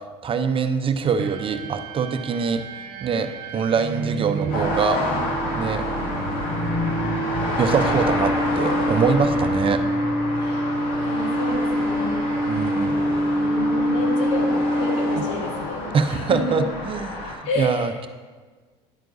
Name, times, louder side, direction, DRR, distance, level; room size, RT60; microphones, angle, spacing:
voice 1, 0.2-2.6 3.0-5.0 5.5-5.8 7.6-9.8 12.5-13.0 15.9-18.1, right 5 dB, 35° right, 8 dB, 0.7 m, -24 dB
sound 1, 1.2-15.7, right 1 dB, 60° right, 1.0 m, -26 dB
sound 2, 4.5-17.3, left 2 dB, 60° left, 2.1 m, -28 dB
voice 2, 10.4-10.8 11.0-12.2 12.9-16.6 17.4-18.0, left 2 dB, 80° left, 0 dB, 1.8 m, -30 dB
10.5 x 8.9 x 2.7 m, 1.4 s
hypercardioid pair, 85°, 16 cm